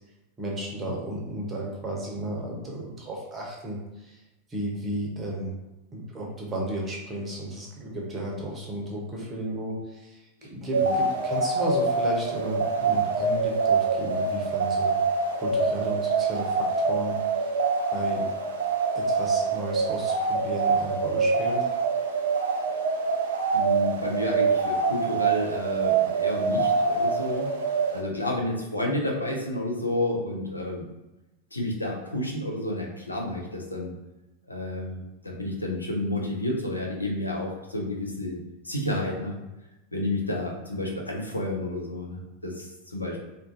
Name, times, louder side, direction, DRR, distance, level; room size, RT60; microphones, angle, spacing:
voice 1, 0.4-4.2 4.5-5.5 5.9-15.0 15.3-17.6 17.9-18.3 18.9-21.7, right 1 dB, 20° right, -2 dB, 0.7 m, -34 dB
sound 1, 10.7-28.0, right 4 dB, 65° right, 0.3 m, -25 dB
voice 2, 23.5-27.5 27.9-30.9 31.5-33.9 34.5-38.4 38.6-39.4 39.9-43.3, left 1 dB, 85° left, 0 dB, 0.4 m, -30 dB
2.5 x 2.1 x 2.5 m, 1.0 s
figure-of-eight pair, 90°, 0 cm